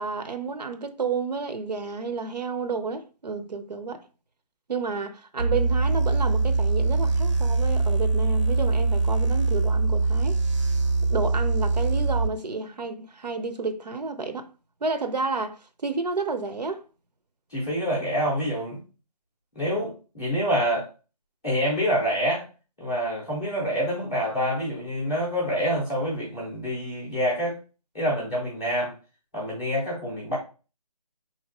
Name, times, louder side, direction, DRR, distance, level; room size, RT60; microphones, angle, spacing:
voice 1, 0.0-4.1 4.7-10.4 11.1-14.5 14.8-16.8, right 4 dB, 85° right, 0.7 m, -31 dB
sound 1, 5.4-12.3, right 3 dB, 50° right, 0.6 m, -23 dB
voice 2, 17.5-18.8 19.5-20.9 21.4-22.5 22.8-27.6 27.9-28.9 29.3-30.4, equal, 5° left, 0.5 m, -26 dB
4.5 x 2.8 x 3.0 m
figure-of-eight pair, 165°, 21 cm